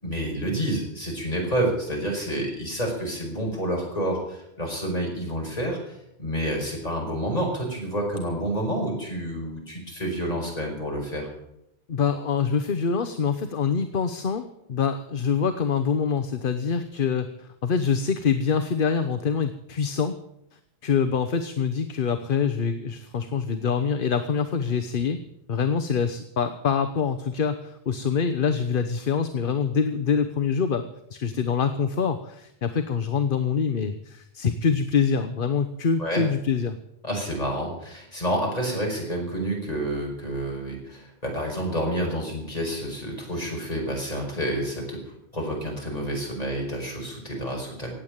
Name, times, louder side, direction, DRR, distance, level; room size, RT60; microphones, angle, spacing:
voice 1, 0.0-11.3 36.0-36.2 37.0-48.0, right 1 dB, 40° left, -1 dB, 5.5 m, -29 dB
voice 2, 11.9-20.2 20.5-25.2 25.5-30.8 31.1-36.8, left 6 dB, 55° left, 10 dB, 1.0 m, -25 dB
17.5 x 8.1 x 8.8 m, 0.79 s
omnidirectional pair, 1.1 m